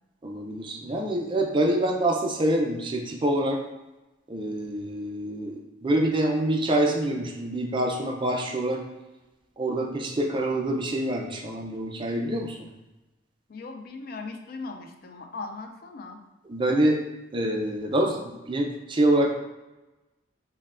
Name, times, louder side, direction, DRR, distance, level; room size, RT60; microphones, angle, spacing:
voice 1, 0.2-3.6 4.3-8.8 9.6-12.6 16.5-17.0 17.3-18.2 18.5-19.3, right 1 dB, 25° right, 1 dB, 0.4 m, -26 dB
voice 2, 13.5-16.2, left 3 dB, 50° left, 5 dB, 0.3 m, -38 dB
5.4 x 2.2 x 2.4 m, 1.1 s
head